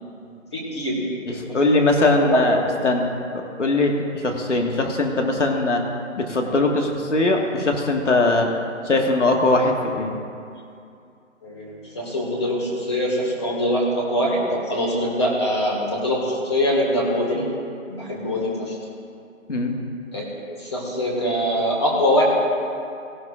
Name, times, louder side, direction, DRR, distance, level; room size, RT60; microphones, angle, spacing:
voice 1, 0.2-1.4 2.2-2.4 11.4-17.5 17.9-18.8 20.1-22.2, equal, 20° left, -3 dB, 1.8 m, -23 dB
voice 2, 1.3-2.6 2.8-5.8 6.2-8.5 8.8-10.2 19.5-19.7, left 2 dB, 65° left, 2 dB, 1.8 m, -21 dB
18.5 x 12.0 x 2.5 m, 2.5 s
hypercardioid pair, 175°, 39 cm